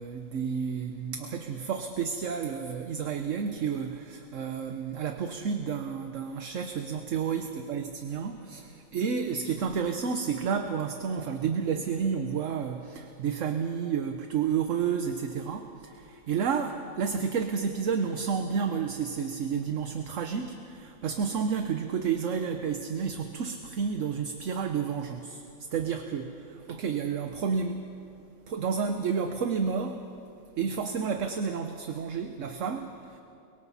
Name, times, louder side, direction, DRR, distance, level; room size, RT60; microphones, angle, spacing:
voice 1, 0.0-25.4 25.7-27.9 28.5-30.1 30.6-33.2, right 6 dB, 65° right, 6 dB, 1.2 m, -31 dB
30.0 x 23.0 x 4.1 m, 2.7 s
omnidirectional pair, 1.4 m